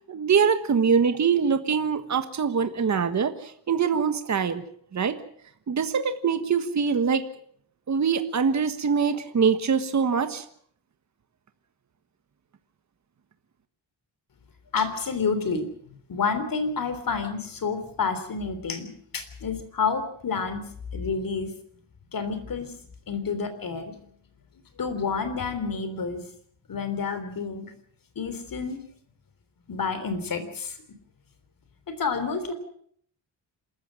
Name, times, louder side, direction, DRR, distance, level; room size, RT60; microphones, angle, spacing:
voice 1, 0.1-4.6 4.9-5.2 5.7-7.2 7.9-10.4, right 6 dB, 40° right, 9 dB, 1.5 m, -23 dB
voice 2, 14.7-15.7 16.1-20.6 20.9-21.5 22.1-22.7 23.1-23.9 24.8-26.2 26.7-27.7 28.2-28.8 29.7-30.7 32.0-32.5, left 5 dB, 50° left, 10 dB, 3.6 m, -29 dB
27.0 x 14.5 x 7.6 m, 0.62 s
wide cardioid pair, 145°, 44 cm